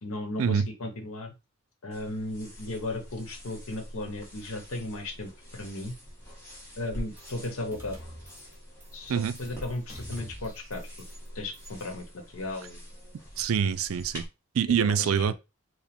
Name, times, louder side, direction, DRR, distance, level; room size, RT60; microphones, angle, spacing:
voice 1, 0.0-1.3 1.8-5.9 6.8-8.0 8.9-10.9 11.3-12.8 14.8-15.2, left 2 dB, 75° left, 1.0 m, -36 dB
sound 1, 1.9-14.3, equal, 15° left, 1.6 m, -45 dB
sound 2, 7.2-7.4 7.7-8.5 8.8-9.1 9.3-11.3 11.5-11.8, equal, 10° right, 1.3 m, -46 dB
voice 2, 13.4-14.2 14.5-15.3, right 7 dB, 75° right, 0.4 m, -25 dB
4.8 x 2.1 x 3.5 m
head